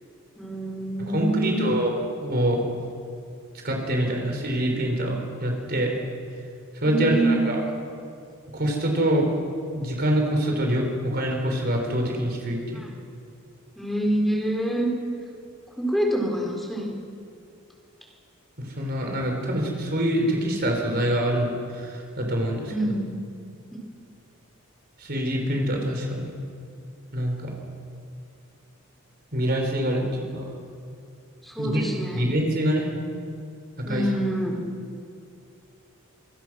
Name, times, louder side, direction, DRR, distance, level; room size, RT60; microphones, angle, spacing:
voice 1, 0.4-1.7 6.9-7.5 12.7-12.9 13.8-14.9 15.8-16.9 22.7-23.1 31.4-32.3 33.8-34.6, right 1 dB, ahead, -2 dB, 4.5 m, -26 dB
voice 2, 1.0-2.6 3.6-6.0 6.8-7.6 8.5-9.3 9.7-12.8 18.6-22.9 25.0-26.3 27.1-27.5 29.3-30.5 31.6-31.8 32.1-32.9 33.9-34.1, right 1 dB, 50° right, 2 dB, 4.3 m, -25 dB
26.5 x 24.5 x 6.3 m, 2.4 s
head